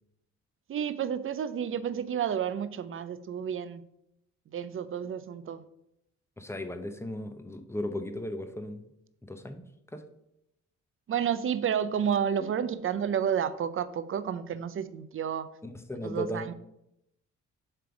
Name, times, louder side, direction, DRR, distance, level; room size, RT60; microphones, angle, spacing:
voice 1, 0.7-3.8 4.5-5.6 11.1-15.5 16.0-16.5, right 8 dB, 45° right, 14 dB, 0.6 m, -30 dB
voice 2, 6.4-8.8 9.2-9.6 9.9-10.0 15.6-16.5, left 1 dB, 10° left, 7 dB, 0.8 m, -36 dB
7.6 x 3.4 x 5.9 m, 0.82 s
cardioid pair, 90°, 30 cm